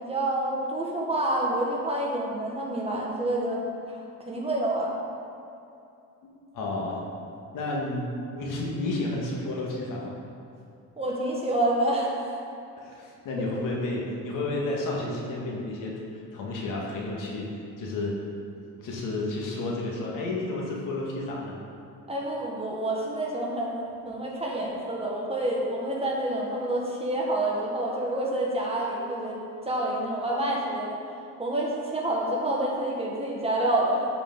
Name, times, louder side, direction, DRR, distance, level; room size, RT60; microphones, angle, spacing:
voice 1, 0.0-3.6 3.9-4.9 11.0-12.4 22.1-29.4 29.6-31.0 31.4-34.1, right 1 dB, 15° right, -3 dB, 1.6 m, -28 dB
voice 2, 6.5-7.0 7.5-10.2 12.8-15.9 16.3-17.5 17.8-18.1 18.8-21.5, left 2 dB, 70° left, -2 dB, 1.8 m, -31 dB
13.0 x 5.0 x 3.8 m, 2.6 s
cardioid pair, 130°, 34 cm